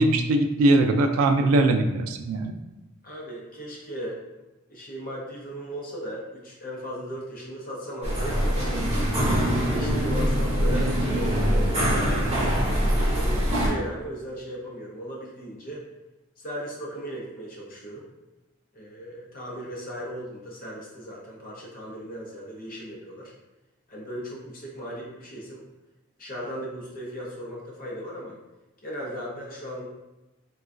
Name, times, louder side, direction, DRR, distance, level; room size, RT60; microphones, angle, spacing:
voice 1, 0.0-2.5, right 2 dB, 85° right, 6 dB, 0.3 m, -21 dB
voice 2, 3.0-4.2 4.7-9.0 9.7-11.6 12.1-15.8 16.4-18.0 18.7-23.3 23.9-25.6 26.2-28.4 28.8-29.8, equal, 40° left, -4 dB, 0.7 m, -37 dB
sound 1, 8.0-13.7, equal, 30° right, 0.8 m, -23 dB
3.6 x 2.3 x 2.4 m, 1.0 s
head